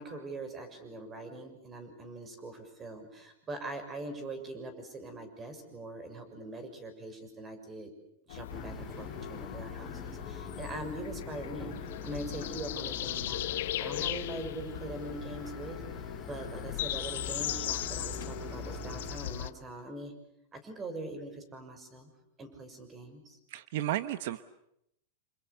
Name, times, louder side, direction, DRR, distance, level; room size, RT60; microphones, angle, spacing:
voice 1, 0.0-7.9 8.3-20.1 20.5-22.1 22.4-23.4, right 2 dB, 20° right, 8 dB, 6.5 m, -42 dB
sound 1, 8.3-19.5, left 13 dB, 75° left, 1.2 m, -38 dB
sound 2, 8.5-19.2, left 1 dB, 5° left, 6.9 m, -45 dB
voice 2, 23.5-24.4, right 13 dB, 65° right, 13 dB, 1.1 m, -33 dB
29.0 x 28.5 x 7.1 m, 0.78 s
supercardioid pair, 145°, 0 cm